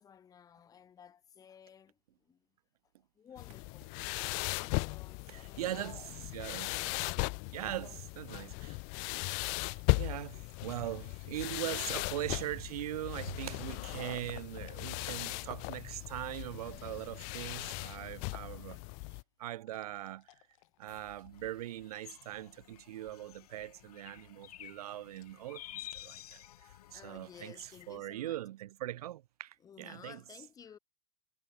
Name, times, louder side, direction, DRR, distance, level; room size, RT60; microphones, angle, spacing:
voice 1, 0.0-2.5 3.1-3.9 4.4-6.2 6.6-7.0 7.6-8.0 8.3-8.9 9.9-10.0 11.5-12.1 18.7-18.9 26.9-28.4 29.6-30.8, left 8 dB, 20° left, 3.2 m, -56 dB
sound 1, 3.4-19.2, left 40 dB or more, 40° left, 0.7 m, -37 dB
voice 2, 5.3-6.0 6.3-7.2 7.5-8.8 9.6-18.8 19.4-20.3 20.8-26.4 26.9-27.5 27.9-30.2, right 14 dB, 75° right, 1.4 m, -41 dB
sound 2, 18.9-28.0, left 19 dB, 60° left, 5.5 m, -69 dB
sound 3, 20.9-28.0, left 13 dB, 80° left, 1.3 m, -52 dB
supercardioid pair, 150°, 19 cm